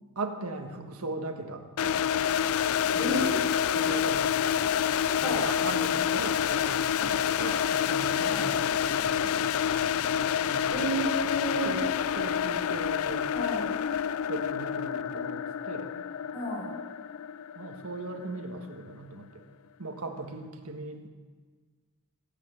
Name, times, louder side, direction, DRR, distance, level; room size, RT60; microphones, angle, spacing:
voice 1, 0.1-2.2 2.9-3.2 3.7-11.0 11.5-11.9 12.1-13.3 14.3-15.9 17.5-19.4 19.8-21.1, right 2 dB, 70° right, 4 dB, 1.6 m, -39 dB
sound 1, 1.8-18.6, left 8 dB, 70° left, 0.4 m, -28 dB
voice 2, 3.0-3.4 5.2-5.4 7.0-7.1 8.2-8.5 10.7-11.8 13.3-13.7 16.3-16.7, right 1 dB, 50° left, -1 dB, 4.7 m, -32 dB
16.0 x 8.4 x 7.8 m, 1.5 s
head